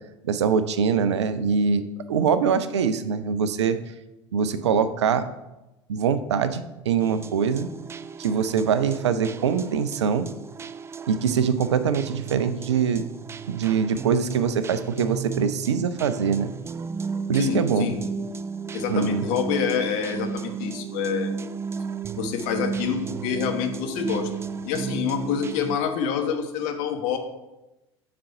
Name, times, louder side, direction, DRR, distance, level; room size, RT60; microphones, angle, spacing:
voice 1, 0.2-1.8 2.1-3.8 4.3-5.2 5.9-7.7 8.2-10.3 11.1-13.1 13.5-16.5 17.3-17.9 18.9-19.3, right 6 dB, 75° right, 12 dB, 0.5 m, -23 dB
sound 1, 7.0-25.8, right 6 dB, 20° right, 0.3 m, -34 dB
voice 2, 17.3-18.0 18.7-21.3 22.2-24.3 24.6-27.2, left 7 dB, 55° left, 5 dB, 1.1 m, -27 dB
7.5 x 4.2 x 5.6 m, 0.99 s
figure-of-eight pair, 70°, 15 cm